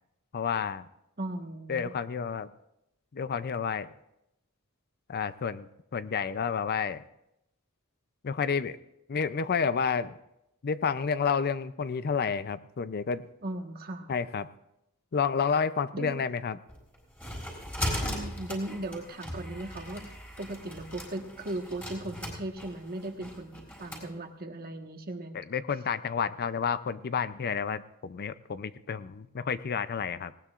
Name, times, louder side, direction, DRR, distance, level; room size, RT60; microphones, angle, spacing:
voice 1, 0.3-0.9 1.7-2.5 3.1-3.9 5.1-5.7 5.9-7.0 8.2-8.8 9.1-10.1 10.6-13.2 14.1-14.5 15.1-16.6 25.3-30.3, left 6 dB, 45° left, 14 dB, 0.5 m, -30 dB
voice 2, 1.2-1.9 13.4-14.1 15.9-16.2 18.0-20.1 20.4-25.4, right 1 dB, 45° right, 4 dB, 1.4 m, -37 dB
sound 1, 16.7-24.1, equal, 10° left, 4.3 m, -38 dB
19.5 x 18.0 x 2.5 m, 0.84 s
head